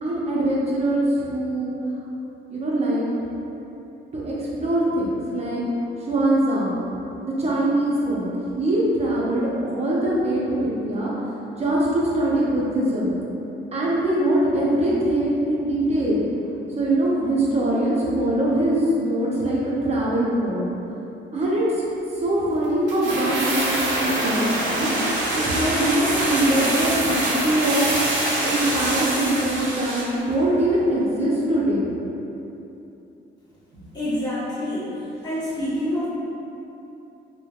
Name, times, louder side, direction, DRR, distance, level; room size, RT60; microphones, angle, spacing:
voice 1, 0.0-1.7 2.5-3.2 4.1-5.6 6.0-6.8 7.4-11.1 11.6-13.1 13.7-16.2 16.8-20.7 21.3-21.8 22.1-24.9 25.3-28.0 28.4-31.9, right 1 dB, 30° right, -6 dB, 0.7 m, -22 dB
sound 1, 22.9-30.2 30.4-30.5, right 1 dB, 75° right, 0.6 m, -24 dB
voice 2, 33.9-34.9 35.2-36.1, left 1 dB, 20° left, -12 dB, 1.1 m, -26 dB
3.1 x 2.2 x 2.4 m, 2.9 s
cardioid pair, 90°, 20 cm